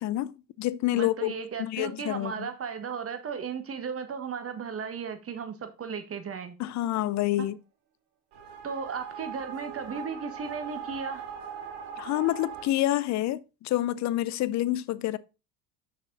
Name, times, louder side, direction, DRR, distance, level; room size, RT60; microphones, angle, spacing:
voice 1, 0.0-1.3 1.6-2.5 6.6-7.6 12.0-15.2, left 14 dB, 40° left, 0.6 m, -28 dB
voice 2, 0.9-6.5 7.4-7.5 8.6-11.2, right 6 dB, 30° right, 1.5 m, -35 dB
sound 1, 8.3-12.7, right 7 dB, 60° right, 1.9 m, -40 dB
6.5 x 6.1 x 4.0 m
hypercardioid pair, 80°, 45 cm